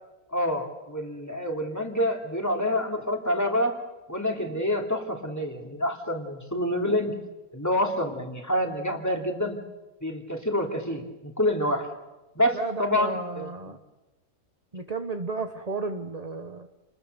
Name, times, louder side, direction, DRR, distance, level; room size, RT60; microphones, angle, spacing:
voice 1, 0.3-3.8 4.1-7.1 7.5-9.6 10.0-11.9 12.3-13.5, left 1 dB, 10° left, 2 dB, 2.9 m, -27 dB
voice 2, 12.5-13.8 14.7-16.7, right 3 dB, 30° right, 7 dB, 1.1 m, -33 dB
29.5 x 20.5 x 6.8 m, 1.1 s
omnidirectional pair, 1.5 m